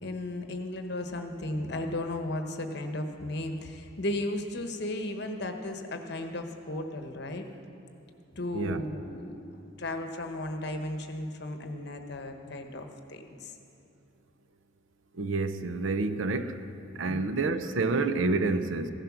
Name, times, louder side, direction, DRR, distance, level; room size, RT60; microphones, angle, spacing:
voice 1, 0.0-7.4 8.4-13.5 17.1-17.4, left 1 dB, 60° left, 5 dB, 1.1 m, -35 dB
voice 2, 15.2-16.6 17.0-18.9, right 3 dB, 80° right, 11 dB, 0.7 m, -28 dB
15.5 x 11.0 x 6.1 m, 2.8 s
head